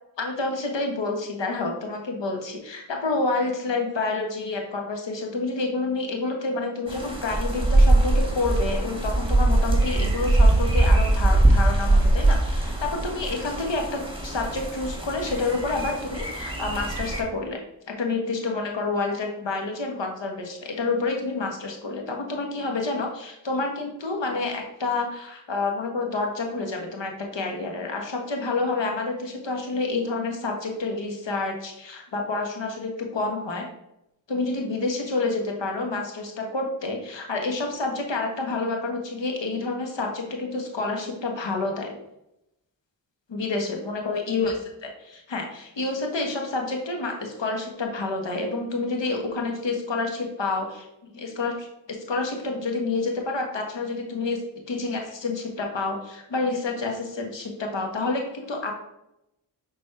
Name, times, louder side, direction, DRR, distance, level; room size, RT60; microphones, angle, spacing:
voice 1, 0.2-17.6 17.9-33.7 34.3-41.9 43.3-50.9 51.1-54.4 54.7-58.7, left 3 dB, 70° left, 2 dB, 1.5 m, -28 dB
sound 1, 6.9-17.2, right 2 dB, 10° right, 1.8 m, -22 dB
6.1 x 4.1 x 4.7 m, 0.86 s
cardioid pair, 40°, 45 cm